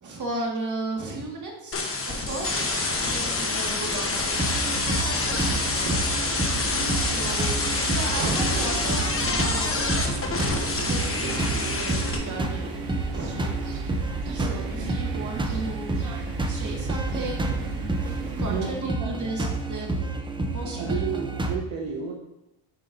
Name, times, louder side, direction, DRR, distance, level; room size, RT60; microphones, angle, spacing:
voice 1, 0.0-4.4 6.9-10.1 10.7-13.6 14.3-16.0 16.5-17.7 18.4-20.1 20.5-21.2, right 2 dB, 35° right, -1 dB, 1.8 m, -35 dB
sound 1, 1.7-12.2, left 3 dB, 25° left, 1.1 m, -27 dB
sound 2, 2.3-18.7, right 3 dB, 85° right, 1.4 m, -36 dB
sound 3, 4.3-21.6, right 2 dB, 10° right, 0.5 m, -30 dB
voice 2, 18.5-19.5 20.8-22.1, right 6 dB, 70° right, 1 dB, 1.0 m, -32 dB
9.2 x 5.4 x 2.6 m, 0.92 s
cardioid pair, 110°, 50 cm